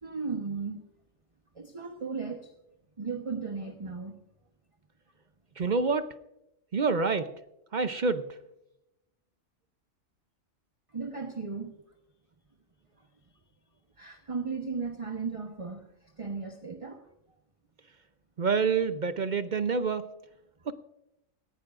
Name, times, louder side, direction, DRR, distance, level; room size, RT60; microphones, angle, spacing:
voice 1, 0.0-0.9 1.5-2.5 3.0-4.2 10.9-11.8 14.0-17.0, right 4 dB, 30° right, 4 dB, 1.0 m, -36 dB
voice 2, 5.6-6.1 6.7-7.3 7.7-8.2 18.4-20.1 20.7-20.8, right 4 dB, 50° right, 11 dB, 0.6 m, -27 dB
18.5 x 15.5 x 2.5 m, 0.87 s
omnidirectional pair, 1.3 m